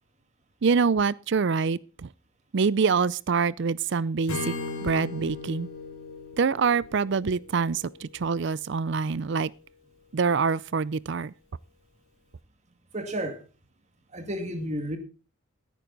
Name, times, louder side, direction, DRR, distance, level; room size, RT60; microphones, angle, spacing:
voice 1, 0.6-2.1 2.5-4.5 4.8-5.7 6.4-9.5 10.1-11.3, right 5 dB, 55° right, 0.4 m, -25 dB
Acoustic guitar / Strum, 4.3-8.2, left 3 dB, 90° left, 4.1 m, -37 dB
voice 2, 12.9-13.4 14.1-15.0, right 1 dB, 35° right, 2.0 m, -31 dB
15.0 x 9.3 x 3.9 m
head